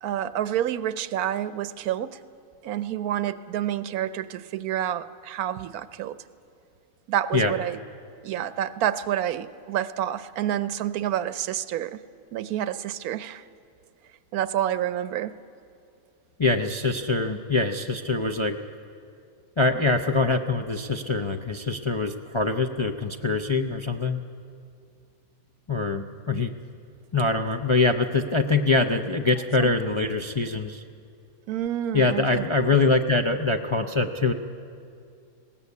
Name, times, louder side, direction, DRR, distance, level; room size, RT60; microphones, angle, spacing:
voice 1, 0.0-2.2 2.6-6.2 7.1-7.8 8.2-12.0 12.3-13.4 14.3-15.4 29.6-29.7 31.5-32.4, right 11 dB, 90° right, 14 dB, 1.2 m, -28 dB
voice 2, 16.4-18.6 19.6-24.2 25.7-26.5 27.1-30.8 31.9-34.3, left 3 dB, 40° left, 3 dB, 0.4 m, -24 dB
20.0 x 17.5 x 8.3 m, 2.4 s
omnidirectional pair, 1.5 m